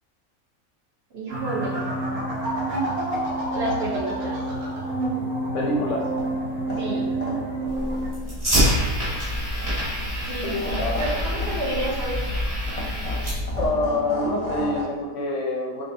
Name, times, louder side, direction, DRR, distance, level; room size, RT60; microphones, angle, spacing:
voice 1, 1.1-1.9 3.5-4.4 6.8-7.1 10.3-12.2, right 2 dB, 55° right, -5 dB, 0.9 m, -30 dB
sound 1, 1.3-8.1, right 1 dB, 90° right, 1.2 m, -28 dB
voice 2, 5.5-6.0 10.4-11.0 13.6-15.8, left 2 dB, 70° left, -1 dB, 0.8 m, -26 dB
sound 2, 6.1-14.8, left 1 dB, 35° left, 0.7 m, -36 dB
Fire, 7.7-13.7, equal, 25° right, 1.2 m, -26 dB
4.7 x 2.5 x 2.5 m, 1.2 s
omnidirectional pair, 1.5 m